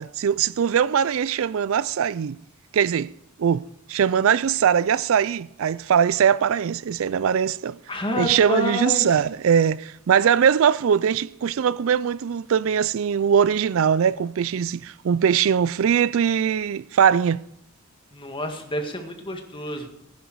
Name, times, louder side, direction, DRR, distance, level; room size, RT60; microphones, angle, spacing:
voice 1, 0.0-2.4 2.7-3.1 3.4-7.8 8.2-17.4, right 8 dB, 70° right, 0.4 m, -21 dB
voice 2, 7.9-9.2 18.1-19.9, equal, 25° left, 1.9 m, -29 dB
16.5 x 10.5 x 4.7 m
head